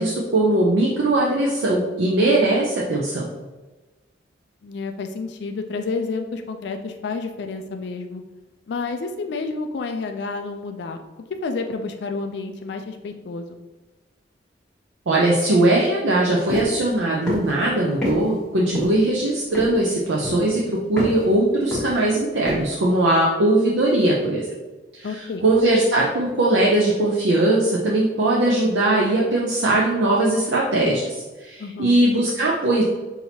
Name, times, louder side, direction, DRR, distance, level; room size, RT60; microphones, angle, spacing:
voice 1, 0.0-3.3 15.1-24.5 25.0-32.8, right 1 dB, 70° right, -3 dB, 0.6 m, -20 dB
voice 2, 4.6-8.2 8.7-11.0 11.4-13.6 25.0-25.4 31.6-32.0, left 4 dB, 60° left, 5 dB, 0.3 m, -30 dB
sound 1, 16.5-16.7 17.3-17.5 18.0-18.2 18.7-19.0 19.5-19.9 20.2-20.6 21.0-21.2 21.7-22.1 22.4-22.6, left 1 dB, 5° left, 1.2 m, -26 dB
5.9 x 2.7 x 2.8 m, 1.2 s
head